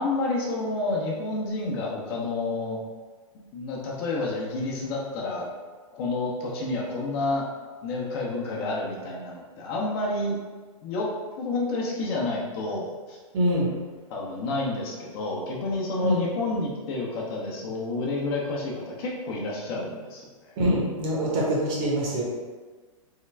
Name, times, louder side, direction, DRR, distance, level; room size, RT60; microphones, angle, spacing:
voice 1, 0.0-2.8 3.5-5.5 5.9-7.4 7.8-10.4 10.8-11.1 11.4-13.2 14.1-20.5, left 2 dB, 45° left, -3 dB, 0.8 m, -29 dB
voice 2, 13.3-13.7 16.0-16.2 20.6-22.2, equal, 40° right, -3 dB, 1.0 m, -24 dB
3.7 x 2.2 x 3.3 m, 1.4 s
hypercardioid pair, 130°, 18 cm